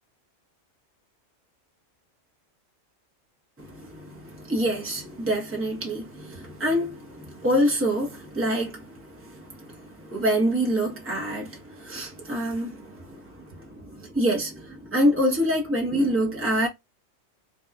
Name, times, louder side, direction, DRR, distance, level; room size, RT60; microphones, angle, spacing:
voice 1, 3.6-16.7, equal, 10° right, 0.8 m, -26 dB
2.8 x 2.3 x 2.2 m
omnidirectional pair, 1.3 m